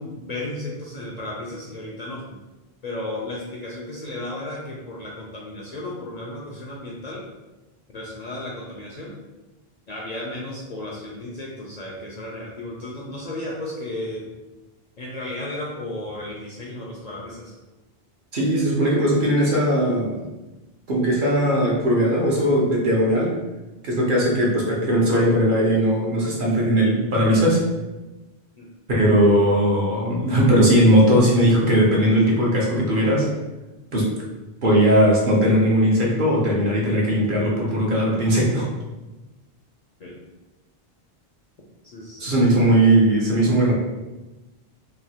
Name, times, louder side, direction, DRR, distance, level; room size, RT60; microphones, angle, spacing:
voice 1, 0.0-2.2 2.8-7.2 7.9-9.2 9.9-14.2 15.0-17.5 24.2-24.3 28.6-28.7 40.0-40.1 41.9-42.3, left 1 dB, 55° left, -3 dB, 0.5 m, -34 dB
voice 2, 18.3-20.2 20.9-23.3 23.8-27.6 28.9-33.3 33.9-34.1 34.6-38.7 42.2-43.7, equal, 55° right, -3 dB, 0.9 m, -18 dB
3.1 x 2.3 x 2.8 m, 1.1 s
omnidirectional pair, 1.0 m